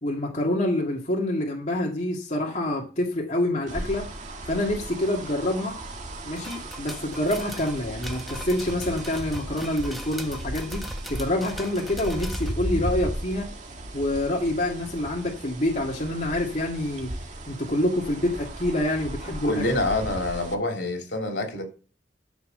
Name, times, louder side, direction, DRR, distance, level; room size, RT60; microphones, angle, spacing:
voice 1, 0.0-4.1 4.5-5.7 6.2-10.8 11.1-13.5 13.9-17.1 17.5-19.5, left 1 dB, 40° left, 2.2 m, -27 dB
sound 1, 3.7-20.5, right 1 dB, 45° right, 1.9 m, -36 dB
sound 2, 6.3-12.5, equal, ahead, 1.5 m, -40 dB
voice 2, 19.4-21.6, left 2 dB, 70° left, 3.4 m, -26 dB
13.0 x 5.2 x 6.7 m
head